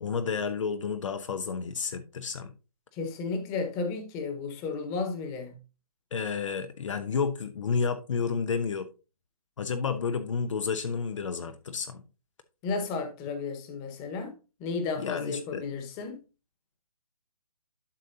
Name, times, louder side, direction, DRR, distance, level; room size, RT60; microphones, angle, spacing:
voice 1, 0.0-2.5 6.1-8.9 9.6-12.0 15.0-15.6, left 5 dB, 55° left, 1.0 m, -31 dB
voice 2, 2.9-5.6 12.6-14.3 14.6-16.2, left 4 dB, 20° left, 1.4 m, -33 dB
11.5 x 5.3 x 2.8 m
hypercardioid pair, 155°, 19 cm